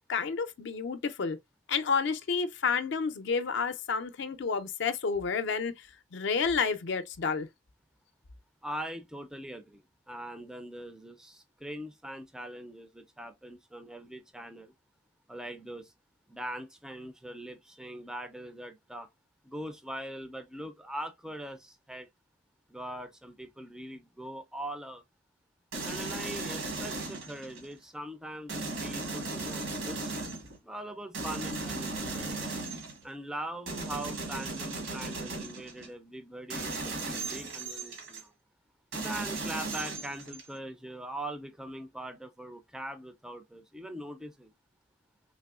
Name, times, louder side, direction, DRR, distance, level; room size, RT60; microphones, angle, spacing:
voice 1, 0.1-1.4 1.7-7.5, left 5 dB, 65° left, 0.4 m, -30 dB
voice 2, 8.6-14.7 15.3-15.9 16.3-19.1 19.4-22.1 22.7-25.0 25.8-30.1 30.6-32.4 33.0-38.3 39.0-44.5, right 1 dB, 5° right, 0.3 m, -42 dB
sound 1, 25.7-27.7 28.5-30.6 31.1-33.1 33.7-35.9 36.5-38.2 38.9-40.6, right 3 dB, 80° right, 1.2 m, -36 dB
3.4 x 2.9 x 2.3 m
head